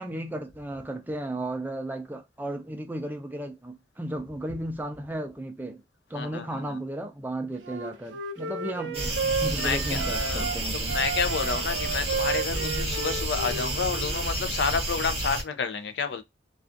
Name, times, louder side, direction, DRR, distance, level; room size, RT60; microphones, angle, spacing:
voice 1, 0.0-5.8 6.1-11.0, right 1 dB, 10° right, 0.3 m, -34 dB
voice 2, 6.1-6.8 9.5-16.2, left 5 dB, 70° left, 0.4 m, -30 dB
Wind instrument woodwind instrument, 7.6-10.6 10.9-14.2, right 4 dB, 80° right, 0.4 m, -33 dB
sound 1, 8.9-15.4, right 1 dB, 35° right, 0.7 m, -30 dB
2.4 x 2.3 x 2.5 m
head